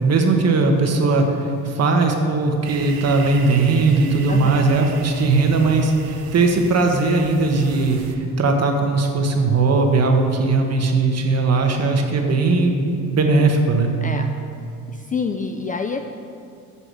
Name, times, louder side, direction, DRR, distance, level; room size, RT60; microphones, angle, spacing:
voice 1, 0.0-13.9, right 3 dB, 40° right, 3 dB, 1.4 m, -18 dB
sound 1, 2.6-8.2, right 6 dB, 65° right, 1.0 m, -38 dB
voice 2, 14.0-14.3 14.9-16.0, left 5 dB, 20° left, 6 dB, 0.4 m, -27 dB
8.4 x 6.3 x 7.6 m, 2.6 s
cardioid pair, 105°, 38 cm